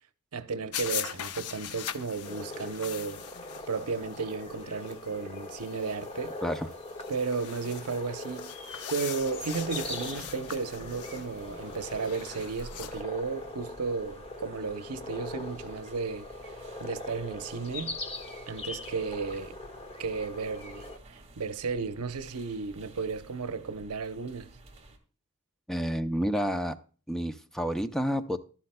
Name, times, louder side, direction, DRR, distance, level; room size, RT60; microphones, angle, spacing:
voice 1, 0.3-3.2 3.7-6.3 7.1-8.6 8.9-16.3 16.8-18.0 18.5-19.6 20.0-24.5, right 4 dB, 80° right, 0.8 m, -34 dB
sound 1, 0.7-13.0, left 10 dB, 75° left, 0.6 m, -42 dB
sound 2, 2.2-21.0, left 2 dB, 25° left, 1.5 m, -41 dB
sound 3, 9.2-25.0, right 1 dB, 30° right, 1.8 m, -52 dB
voice 2, 25.7-26.8 27.1-28.4, equal, ahead, 0.5 m, -29 dB
12.5 x 12.0 x 2.2 m
head